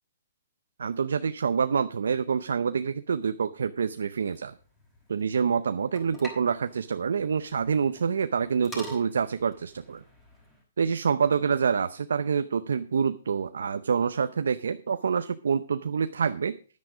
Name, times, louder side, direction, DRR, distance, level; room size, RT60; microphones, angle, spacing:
voice 1, 0.8-4.5 5.1-10.0 10.8-16.6, right 6 dB, 80° right, 11 dB, 0.6 m, -27 dB
sound 1, 4.3-10.6, equal, 15° left, 5.7 m, -47 dB
10.5 x 9.4 x 4.9 m, 0.38 s
hypercardioid pair, 145°, 0 cm